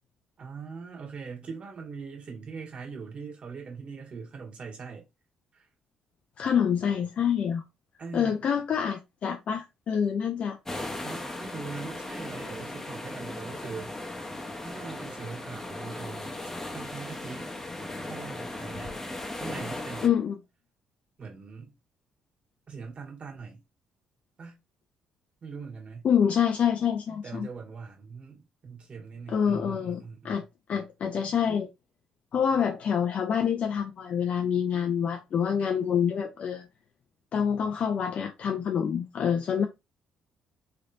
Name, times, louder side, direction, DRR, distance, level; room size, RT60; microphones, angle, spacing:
voice 1, 0.4-5.1 5.5-5.7 8.0-8.4 11.0-13.9 14.3-16.4 16.7-17.5 18.1-19.0 19.4-20.1 21.2-21.7 22.7-23.6 24.4-24.6 25.4-26.1 27.2-30.5, right 5 dB, 50° right, 1.6 m, -41 dB
voice 2, 6.4-7.6 8.1-10.6 20.0-20.4 26.0-27.5 29.3-30.4 30.7-31.7 32.3-36.6 37.3-39.7, left 7 dB, 55° left, 0.4 m, -26 dB
sound 1, 10.7-20.1, left 2 dB, 15° left, 0.8 m, -37 dB
3.3 x 2.8 x 2.5 m
hypercardioid pair, 55°, 3 cm